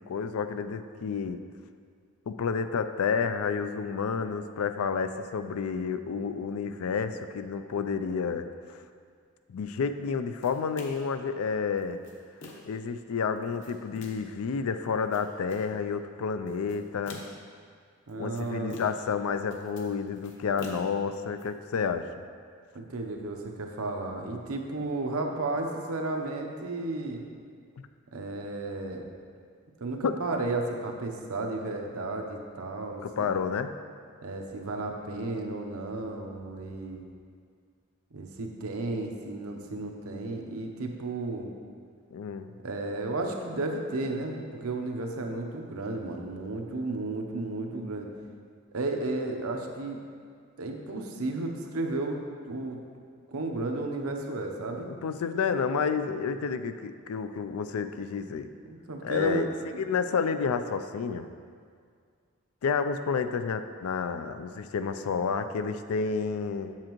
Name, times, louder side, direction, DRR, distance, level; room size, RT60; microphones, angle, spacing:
voice 1, 0.1-1.4 2.3-8.8 9.5-12.0 12.7-17.2 18.2-22.1 27.8-27.9 30.0-30.2 33.0-33.8 42.1-42.5 54.9-58.5 59.0-61.3 62.6-66.8, left 5 dB, 90° left, 10 dB, 0.4 m, -30 dB
sound 1, 10.4-11.2 11.8-12.8 13.4-14.3 14.9-15.7 16.5-17.5 18.1-19.1 19.4-21.4, left 2 dB, 55° left, 0.9 m, -47 dB
voice 2, 18.1-18.8 22.7-27.2 28.1-29.0 29.8-33.3 34.2-37.0 38.1-41.5 42.6-48.1 48.7-50.0 50.6-52.2 52.5-52.8 53.3-54.9 58.7-59.8, right 2 dB, 85° right, 2 dB, 0.8 m, -33 dB
7.4 x 7.3 x 3.0 m, 2.1 s
head